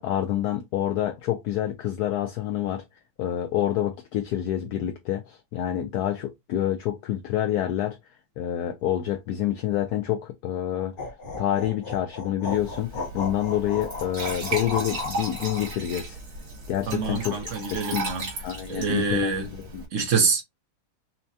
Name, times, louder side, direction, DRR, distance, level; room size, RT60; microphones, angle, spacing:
voice 1, 0.0-2.8 3.2-8.0 8.4-11.1 11.4-12.9 13.1-16.2 16.7-18.0 18.4-19.3 19.7-19.8, left 12 dB, 75° left, 0.9 m, -27 dB
sound 1, 11.0-15.7, left 3 dB, 45° left, 0.7 m, -35 dB
Glass / Trickle dribble / Fill (with liquid), 12.5-19.9, right 3 dB, 80° right, 2.9 m, -36 dB
voice 2, 16.9-18.3 18.7-19.5 19.9-20.4, right 4 dB, 55° right, 0.9 m, -25 dB
5.6 x 2.2 x 2.7 m
omnidirectional pair, 2.1 m